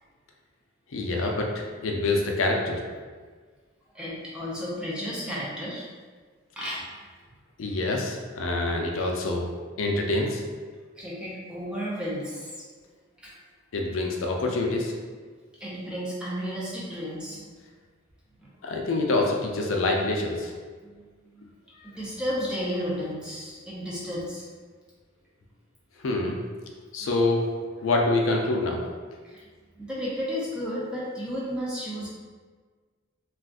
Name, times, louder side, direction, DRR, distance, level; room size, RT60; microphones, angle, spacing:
voice 1, 0.9-2.8 7.6-9.5 9.8-10.4 13.7-14.9 18.6-20.5 26.0-26.4 26.9-27.5 27.8-28.8, left 2 dB, 75° left, 1 dB, 0.4 m, -26 dB
voice 2, 3.9-5.9 6.6-7.0 11.0-12.5 13.2-13.3 15.6-17.5 18.4-18.5 20.8-21.1 21.3-21.5 21.8-24.4 29.2-29.4 29.8-32.1, equal, 5° right, -7 dB, 0.5 m, -33 dB
2.4 x 2.4 x 3.5 m, 1.5 s
head